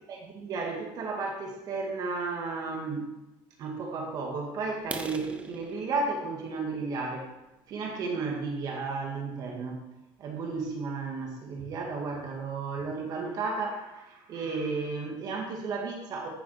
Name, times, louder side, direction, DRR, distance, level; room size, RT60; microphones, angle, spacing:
voice 1, 0.1-3.1 3.6-7.3 7.7-9.8 10.2-16.3, right 4 dB, 45° right, 1 dB, 2.0 m, -33 dB
sound 1, 4.8-8.5 9.1-9.3 9.7-9.8 10.3-10.4 10.7-10.8 11.3-11.4 11.6-12.1, right 3 dB, 15° right, 0.8 m, -44 dB
13.5 x 6.4 x 5.7 m, 0.98 s
cardioid pair, 150°, 9 cm